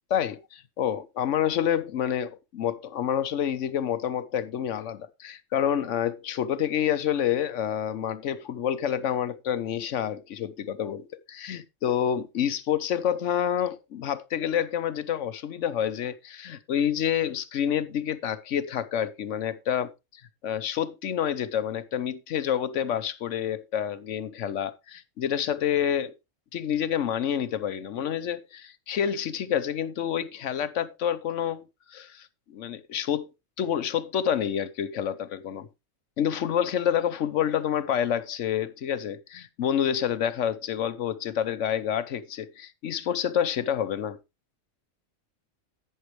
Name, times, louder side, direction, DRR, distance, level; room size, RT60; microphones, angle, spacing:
voice 1, 0.1-11.0 11.3-26.1 26.5-31.6 31.9-33.3 33.6-35.7 36.2-44.2, left 9 dB, 65° left, 1.0 m, -28 dB
11.0 x 9.3 x 3.1 m
omnidirectional pair, 1.4 m